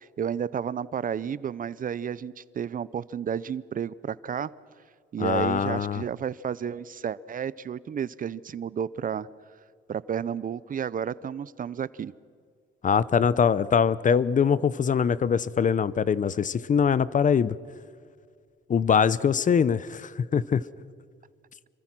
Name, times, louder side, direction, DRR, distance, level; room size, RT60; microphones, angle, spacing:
voice 1, 0.0-4.5 5.1-9.3 9.9-12.1, right 8 dB, 45° right, 19 dB, 0.6 m, -32 dB
voice 2, 5.2-6.0 12.8-17.6 18.7-20.6, left 7 dB, 40° left, 19 dB, 0.7 m, -23 dB
27.0 x 24.5 x 6.1 m, 2.1 s
cardioid pair, 90°, 20 cm